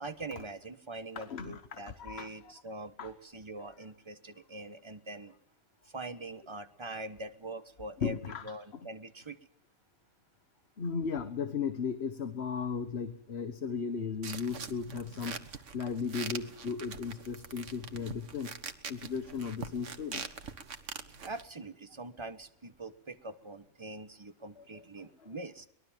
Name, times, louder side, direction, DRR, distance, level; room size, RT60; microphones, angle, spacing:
voice 1, 0.0-5.3 5.9-8.2 8.4-9.4 21.2-25.7, right 2 dB, 25° right, 10 dB, 1.3 m, -43 dB
voice 2, 1.1-2.5 3.0-3.1 8.0-8.5 8.8-8.9 10.8-18.5 18.9-20.3 24.6-25.4, left 6 dB, 60° left, 10 dB, 1.5 m, -36 dB
sound 1, 14.2-21.4, right 6 dB, 80° right, 1.7 m, -43 dB
23.0 x 20.5 x 7.4 m, 0.68 s
omnidirectional pair, 1.2 m